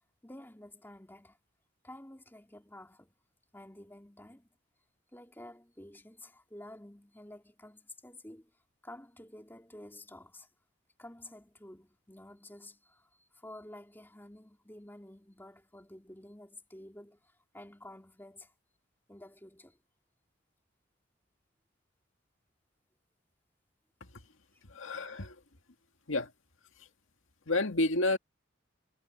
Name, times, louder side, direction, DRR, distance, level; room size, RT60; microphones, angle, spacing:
voice 1, 0.2-1.4 1.8-3.1 3.5-4.5 5.1-8.5 8.8-10.5 11.0-18.5 19.1-19.8 24.5-24.6, left 1 dB, 10° left, 3.1 m, -51 dB
voice 2, 24.7-25.4 26.1-26.3 27.5-28.2, left 2 dB, 75° left, 1.9 m, -30 dB
head